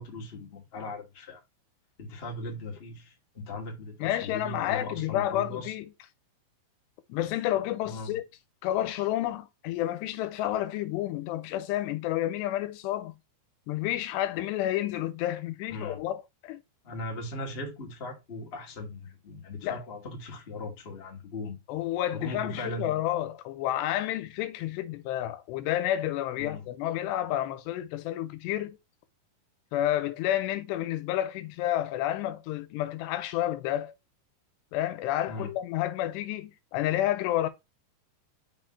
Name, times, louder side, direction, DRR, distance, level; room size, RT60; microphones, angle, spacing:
voice 1, 0.0-1.4 2.0-5.7 7.8-8.2 15.7-16.0 16.8-21.6 22.1-23.0 26.4-26.7 35.3-35.5, left 2 dB, 25° left, 1.3 m, -38 dB
voice 2, 4.0-5.9 7.1-8.2 8.6-13.1 13.7-16.6 19.6-19.8 21.7-28.8 29.7-33.9 34.7-37.5, left 13 dB, 90° left, 2.8 m, -30 dB
6.3 x 4.4 x 4.7 m
omnidirectional pair, 4.9 m